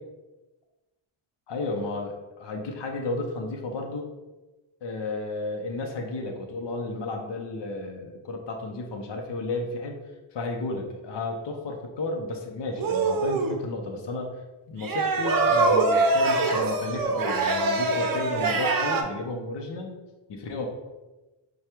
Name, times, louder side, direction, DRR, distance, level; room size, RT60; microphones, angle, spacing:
voice 1, 1.5-4.0 4.8-10.0 10.3-14.4 14.7-20.0 20.3-20.7, left 2 dB, 60° left, 2 dB, 0.7 m, -33 dB
sound 1, 12.7-13.6 14.8-19.0, right 3 dB, 45° right, 0.6 m, -24 dB
4.7 x 2.3 x 4.4 m, 1.1 s
wide cardioid pair, 110°, 48 cm